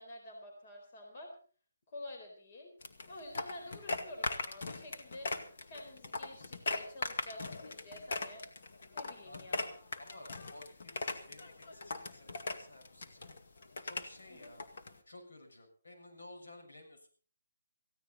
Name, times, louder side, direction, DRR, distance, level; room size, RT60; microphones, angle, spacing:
voice 1, 0.0-1.3 1.9-2.7 3.1-5.3 5.7-8.4 8.9-9.8 14.3-14.5, left 1 dB, 35° left, 3 dB, 4.3 m, -49 dB
sound 1, 2.8-15.0, left 3 dB, 55° left, 2.1 m, -40 dB
voice 2, 3.3-3.8 9.2-13.3 13.8-14.7 15.0-17.1, left 1 dB, 80° left, 2 dB, 6.7 m, -55 dB
18.0 x 16.0 x 4.1 m, 0.41 s
hypercardioid pair, 165°, 0 cm